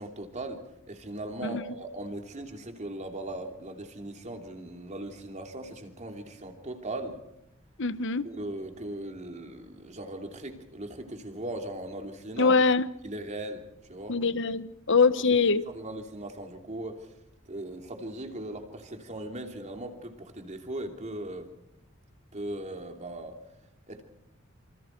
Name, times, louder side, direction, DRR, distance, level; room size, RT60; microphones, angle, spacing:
voice 1, 0.0-7.2 8.2-12.5 13.0-13.6 13.9-14.2 15.2-15.3 15.7-17.1 17.4-21.5 22.3-23.4 23.9-24.0, right 1 dB, 35° right, 4 dB, 3.0 m, -38 dB
voice 2, 7.8-8.2 12.4-12.9 14.1-15.6, left 4 dB, 65° left, 14 dB, 1.0 m, -23 dB
27.5 x 25.5 x 4.6 m, 0.83 s
head